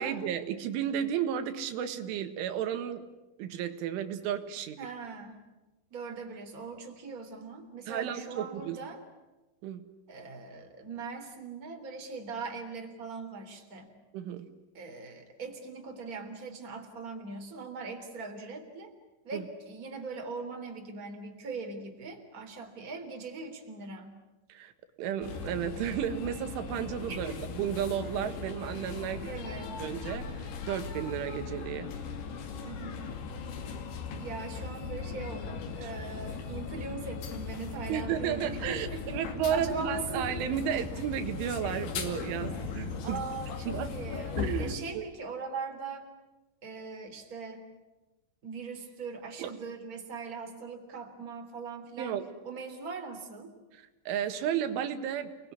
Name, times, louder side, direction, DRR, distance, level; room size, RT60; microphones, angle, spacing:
voice 1, 0.0-3.1 3.4-4.8 7.9-8.8 9.6-9.8 14.1-14.5 19.3-19.4 24.5-24.7 25.0-29.3 29.8-31.9 35.8-35.9 37.9-43.2 43.7-44.0 44.4-45.1 49.4-49.5 52.0-52.2 54.1-55.5, right 9 dB, 85° right, 8 dB, 4.0 m, -33 dB
voice 2, 4.8-5.4 5.9-9.0 10.1-13.9 14.7-18.9 19.2-24.2 27.1-27.4 29.2-29.8 32.6-33.2 34.2-39.2 39.5-40.4 43.0-46.1 46.6-47.6 48.4-52.2 52.4-53.5, right 4 dB, 20° right, 4 dB, 3.2 m, -40 dB
sound 1, 25.2-44.8, left 5 dB, 70° left, 4.6 m, -38 dB
29.5 x 20.5 x 9.8 m, 1.1 s
omnidirectional pair, 5.5 m